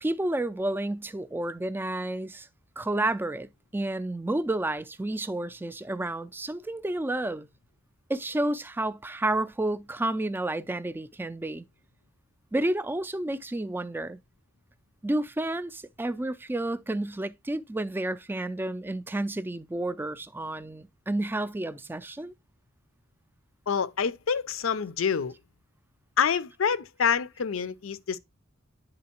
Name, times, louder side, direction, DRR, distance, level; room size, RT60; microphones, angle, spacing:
voice 1, 0.0-2.5 2.8-7.5 8.1-11.7 12.5-14.2 15.0-22.3, right 1 dB, 10° right, 0.4 m, -30 dB
voice 2, 23.7-25.3 26.2-28.2, left 6 dB, 75° left, 0.5 m, -27 dB
10.5 x 3.8 x 2.9 m
head